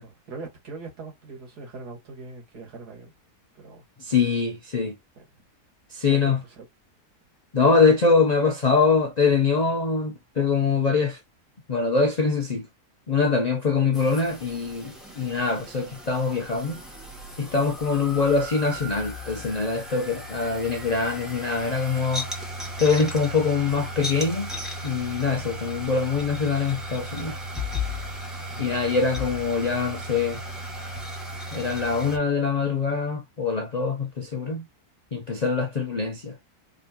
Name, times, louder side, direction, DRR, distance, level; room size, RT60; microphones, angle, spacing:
voice 1, 0.0-3.1 3.6-3.8 5.2-5.3 6.0-6.2 6.5-6.7 28.5-28.7, right 3 dB, 80° right, 2.0 m, -41 dB
voice 2, 4.0-4.9 5.9-6.4 7.5-11.2 11.7-12.7 13.1-16.8 17.4-22.3 22.8-24.5 24.8-27.4 28.6-30.4 31.5-34.7 35.1-36.4, left 4 dB, 60° left, 0.4 m, -23 dB
sound 1, 13.9-32.2, left 1 dB, ahead, 1.0 m, -36 dB
3.7 x 3.3 x 2.8 m
omnidirectional pair, 1.7 m